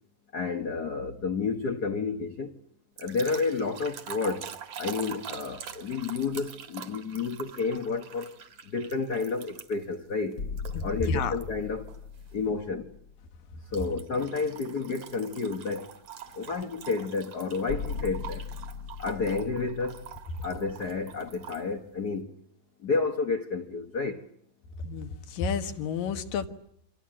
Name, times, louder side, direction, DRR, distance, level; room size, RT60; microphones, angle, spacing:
voice 1, 0.3-2.6 3.0-4.5 4.8-8.3 8.6-10.4 10.8-11.9 12.3-12.9 13.7-15.9 16.3-18.4 19.0-20.1 20.4-22.3 22.8-24.3, left 4 dB, 70° left, 0.9 m, -30 dB
sound 1, 3.0-9.9 10.6-11.4 11.9-12.2 13.7-21.7, right 8 dB, 60° right, 3.0 m, -44 dB
sound 2, 10.4-13.9 14.2-14.3 17.7-21.3, left 5 dB, 55° left, 1.2 m, -39 dB
voice 2, 10.7-11.4 24.8-26.5, left 5 dB, 90° left, 3.2 m, -30 dB
28.5 x 25.5 x 7.5 m
omnidirectional pair, 3.8 m